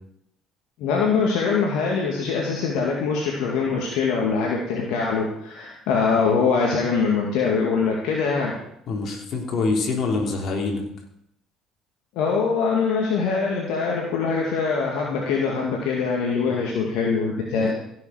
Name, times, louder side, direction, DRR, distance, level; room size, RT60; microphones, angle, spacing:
voice 1, 0.8-8.5 12.2-17.7, left 5 dB, 70° left, -2 dB, 2.2 m, -23 dB
voice 2, 8.9-10.8 16.4-17.1 17.6-17.7, left 3 dB, 55° left, 1 dB, 3.4 m, -26 dB
16.0 x 7.1 x 5.1 m, 0.74 s
hypercardioid pair, 65°, 0 cm